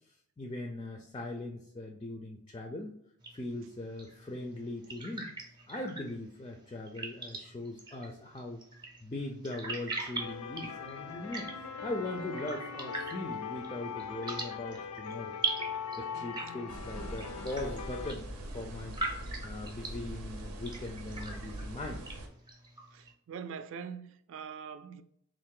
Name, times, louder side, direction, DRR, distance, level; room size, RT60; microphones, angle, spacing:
voice 1, 0.4-3.0 3.3-5.3 5.7-8.6 9.0-11.5 11.8-15.3 16.0-19.0 19.4-22.0, left 2 dB, 20° left, 0.3 m, -40 dB
sound 1, 3.2-23.1, right 3 dB, 20° right, 0.6 m, -43 dB
sound 2, 10.2-18.1, left 6 dB, 85° left, 0.4 m, -41 dB
sound 3, 16.7-22.3, right 1 dB, 85° right, 0.7 m, -42 dB
voice 2, 22.9-25.0, right 6 dB, 60° right, 0.3 m, -43 dB
3.6 x 2.5 x 3.7 m
head